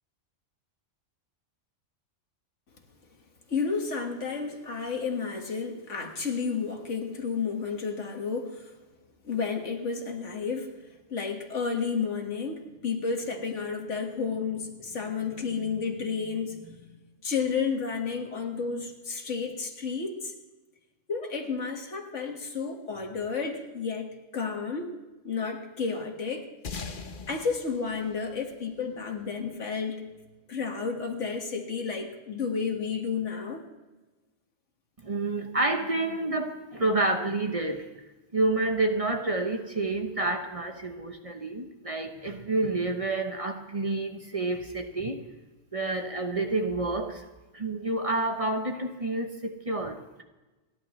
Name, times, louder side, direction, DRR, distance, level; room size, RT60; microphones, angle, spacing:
voice 1, 3.5-8.7 9.2-10.8 11.1-16.9 17.2-20.3 21.1-25.0 25.2-26.5 27.3-30.0 30.5-33.6, left 5 dB, 80° left, 2 dB, 2.1 m, -31 dB
sound 1, 26.6-29.4, left 4 dB, 45° left, 1.1 m, -41 dB
voice 2, 35.0-37.9 38.3-45.2 45.7-47.2 47.5-50.2, right 2 dB, 30° right, 5 dB, 0.9 m, -29 dB
29.0 x 11.0 x 3.2 m, 1.1 s
omnidirectional pair, 1.2 m